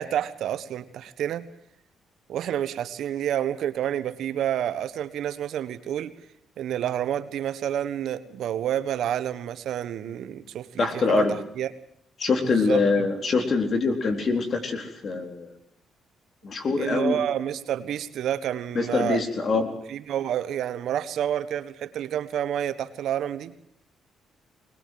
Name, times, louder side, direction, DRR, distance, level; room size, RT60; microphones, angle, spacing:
voice 1, 0.0-1.5 2.3-6.1 6.6-11.7 12.4-13.1 16.8-19.2 19.9-23.5, right 10 dB, 75° right, 13 dB, 1.3 m, -29 dB
voice 2, 10.8-11.4 12.2-15.5 16.4-17.2 18.7-19.7, left 4 dB, 50° left, 6 dB, 4.0 m, -24 dB
21.5 x 20.5 x 7.8 m, 0.70 s
cardioid pair, 90°, 0 cm